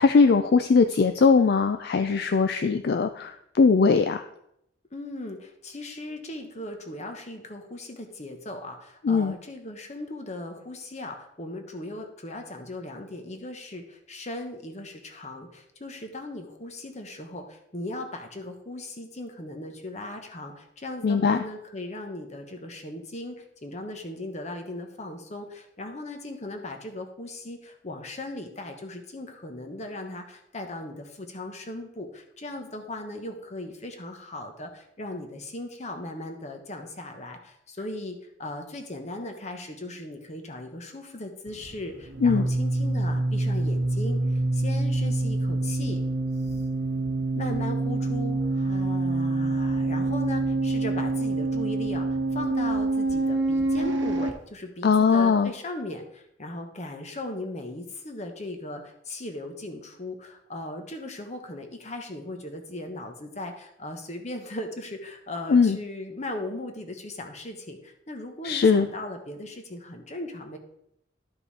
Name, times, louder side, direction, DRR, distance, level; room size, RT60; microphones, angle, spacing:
voice 1, 0.0-4.2 9.0-9.3 21.0-21.4 42.2-42.4 54.8-55.5 65.5-65.8 68.4-68.9, left 5 dB, 55° left, 9 dB, 0.4 m, -20 dB
voice 2, 4.9-46.0 46.4-46.7 47.3-70.6, left 1 dB, 35° left, 5 dB, 1.2 m, -38 dB
sound 1, 41.5-54.3, right 2 dB, 70° right, 0.8 m, -26 dB
11.5 x 5.4 x 4.2 m, 0.76 s
head